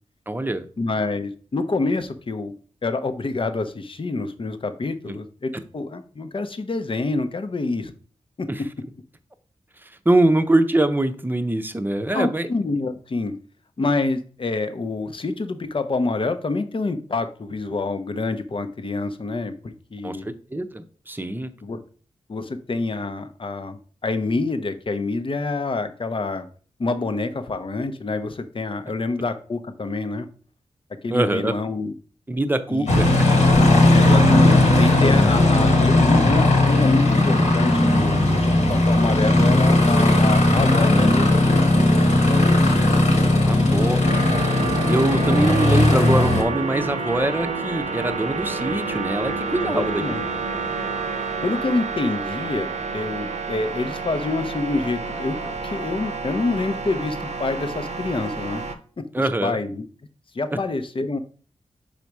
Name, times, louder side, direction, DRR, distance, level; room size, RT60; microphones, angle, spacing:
voice 1, 0.3-0.6 5.1-5.2 8.5-8.6 9.8-12.5 20.0-21.5 31.1-31.5 32.3-33.1 43.4-44.0 44.9-50.0 59.1-59.6, right 1 dB, 15° right, 9 dB, 0.7 m, -23 dB
voice 2, 0.8-2.5 2.8-7.9 8.4-8.5 12.1-13.3 13.8-20.4 21.6-21.8 22.3-26.5 26.8-30.3 31.0-31.9 32.7-32.9 33.9-41.6 43.5-43.9 49.6-50.2 51.4-55.4 55.6-58.6 59.0-59.1 59.4-59.8 60.3-61.2, left 3 dB, 45° left, 10 dB, 0.7 m, -27 dB
Aircraft, 32.9-46.4, left 1 dB, 75° left, 1.5 m, -17 dB
sound 1, 44.1-58.8, right 4 dB, 70° right, 0.8 m, -29 dB
5.0 x 4.2 x 4.7 m, 0.43 s
cardioid pair, 50°, 12 cm